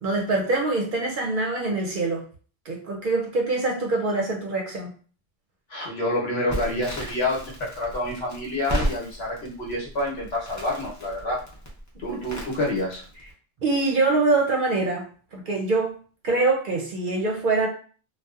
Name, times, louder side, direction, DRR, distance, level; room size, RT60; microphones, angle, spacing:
voice 1, 0.0-2.3 2.7-4.9 12.1-12.3 13.6-16.0 16.2-17.7, right 3 dB, 55° right, 0 dB, 0.6 m, -24 dB
voice 2, 5.7-11.4 12.0-13.0, left 1 dB, 70° left, -3 dB, 1.1 m, -28 dB
Crackle, 6.5-13.3, right 1 dB, 25° left, 0.5 m, -34 dB
2.7 x 2.1 x 2.3 m, 0.41 s
omnidirectional pair, 1.1 m